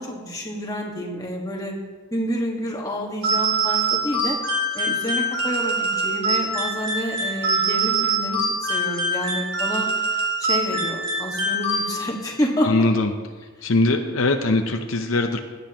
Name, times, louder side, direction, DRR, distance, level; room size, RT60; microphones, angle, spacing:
voice 1, 0.0-1.7 2.1-4.4 4.7-9.9 10.4-12.8, equal, 15° left, -1 dB, 1.6 m, -28 dB
sound 1, 3.2-12.3, right 2 dB, 55° right, 3.4 m, -24 dB
voice 2, 12.6-13.1 13.6-15.4, left 2 dB, 70° left, 5 dB, 0.7 m, -21 dB
17.0 x 9.7 x 3.0 m, 1.4 s
head